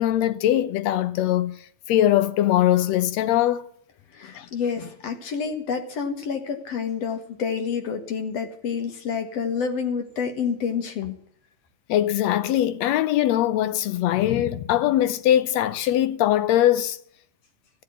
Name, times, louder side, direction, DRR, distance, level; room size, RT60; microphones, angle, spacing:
voice 1, 0.0-1.6 1.9-3.6 4.4-4.5 11.9-17.0, left 12 dB, 75° left, 1.9 m, -21 dB
voice 2, 4.2-11.2, left 6 dB, 60° left, 2.8 m, -28 dB
16.0 x 7.8 x 8.7 m
omnidirectional pair, 3.4 m